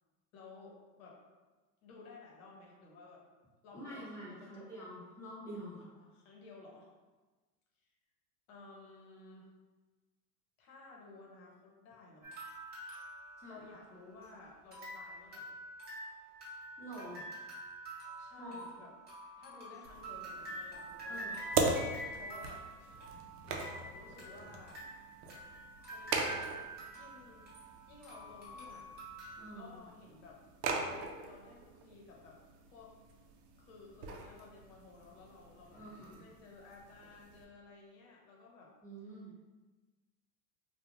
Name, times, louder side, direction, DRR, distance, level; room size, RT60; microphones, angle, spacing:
voice 1, 0.3-1.2 1.8-3.2 3.6-4.7 5.8-6.9 7.8-7.9 8.5-9.5 10.6-12.3 13.4-15.6 17.6-17.8 18.2-18.9 19.4-24.9 25.8-26.5 26.9-27.6 27.9-28.9 29.5-32.4 32.7-32.9 33.6-35.8 36.2-38.7, left 3 dB, 60° left, -2 dB, 0.9 m, -55 dB
voice 2, 3.7-5.8 13.4-13.6 16.8-17.3 18.4-18.7 21.1-21.4 29.4-29.8 35.7-36.2 38.8-39.3, right 1 dB, 5° left, -7 dB, 0.8 m, -47 dB
sound 1, 12.2-14.2 14.7-29.4, right 1 dB, 20° right, 0.9 m, -47 dB
sound 2, 19.8-37.4, right 4 dB, 75° right, 0.6 m, -41 dB
2.4 x 2.3 x 3.1 m, 1.3 s
hypercardioid pair, 115°, 48 cm